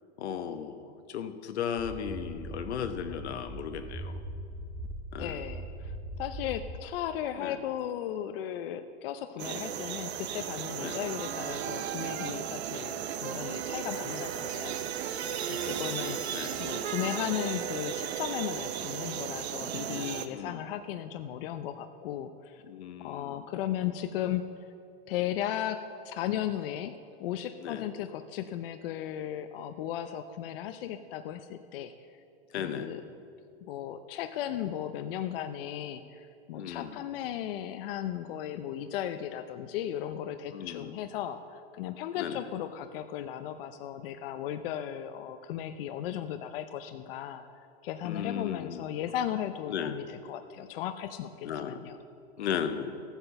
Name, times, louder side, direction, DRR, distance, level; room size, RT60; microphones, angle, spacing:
voice 1, 0.2-4.2 5.1-5.4 7.4-7.6 9.4-9.7 10.8-11.0 15.6-16.6 20.3-20.6 22.7-23.4 27.6-27.8 32.5-32.9 36.5-37.0 40.5-40.9 42.2-42.4 48.0-48.9 49.7-50.0 51.4-51.8 52.4-52.9, left 8 dB, 85° left, 8 dB, 1.1 m, -36 dB
sound 1, 1.8-6.8, right 1 dB, ahead, 0.7 m, -40 dB
voice 2, 5.2-15.2 15.5-22.6 23.0-24.4 25.1-26.9 27.2-31.9 32.6-33.0 33.7-47.5 47.8-52.0, left 11 dB, 60° left, 9 dB, 0.6 m, -36 dB
sound 2, 9.4-20.3, right 9 dB, 75° right, 0.9 m, -35 dB
sound 3, 13.8-18.4, right 6 dB, 55° right, 2.8 m, -46 dB
13.5 x 9.0 x 6.8 m, 2.5 s
supercardioid pair, 140°, 32 cm